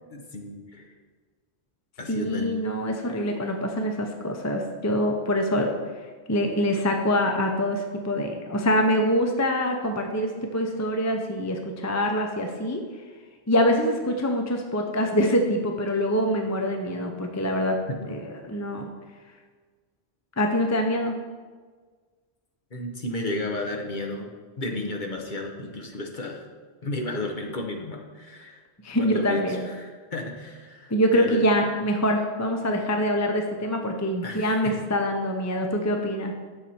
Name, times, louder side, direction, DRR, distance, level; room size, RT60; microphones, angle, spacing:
voice 1, 0.1-0.9 2.0-2.6 17.9-18.2 22.7-24.3 24.6-26.4 26.8-28.6 29.0-31.4 34.2-34.7, left 2 dB, 45° left, 2 dB, 1.2 m, -33 dB
voice 2, 2.1-5.7 6.3-12.8 13.5-17.8 18.1-18.2 18.4-18.9 20.4-21.2 28.8-29.7 30.9-36.3, equal, 20° left, 4 dB, 0.7 m, -25 dB
10.5 x 6.6 x 4.3 m, 1.5 s
omnidirectional pair, 1.1 m